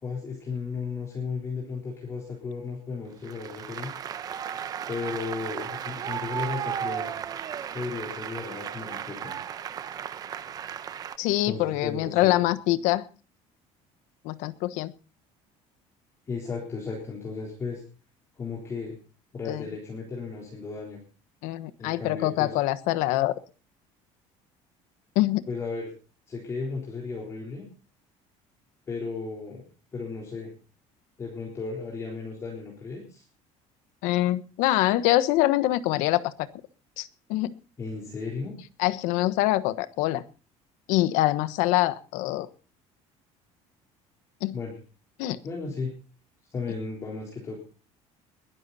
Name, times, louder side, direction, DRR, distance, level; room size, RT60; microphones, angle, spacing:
voice 1, 0.0-3.9 4.9-7.1 7.7-9.3 11.5-12.4 16.3-17.8 18.4-19.0 19.3-21.0 21.8-22.5 25.5-25.9 26.3-27.6 28.9-29.6 29.9-30.5 31.2-33.2 37.8-38.5 44.5-44.7 45.4-45.9 46.5-47.6, left 4 dB, 20° left, -1 dB, 3.9 m, -35 dB
Applause, 3.2-11.2, right 9 dB, 30° right, 0.9 m, -35 dB
voice 2, 11.2-13.0 14.2-14.9 19.4-19.7 21.4-23.3 25.1-25.4 34.0-36.3 37.0-37.5 38.8-40.2 40.9-42.5 44.4-44.6 45.2-45.4, left 16 dB, 80° left, 15 dB, 1.2 m, -24 dB
21.5 x 11.5 x 4.2 m, 0.37 s
cardioid pair, 180°, 13 cm